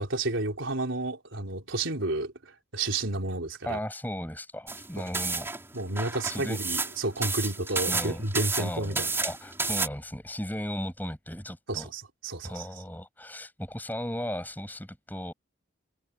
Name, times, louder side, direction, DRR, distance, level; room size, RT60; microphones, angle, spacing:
voice 1, 0.0-3.8 5.0-5.1 5.7-9.2 11.7-12.7, right 2 dB, 75° right, 3.9 m, -31 dB
voice 2, 3.7-5.5 6.2-6.6 7.4-7.5 7.9-8.2 8.6-11.9 12.4-15.3, equal, 10° left, 7.7 m, -36 dB
sound 1, 4.7-9.9, right 3 dB, 10° right, 4.6 m, -31 dB
head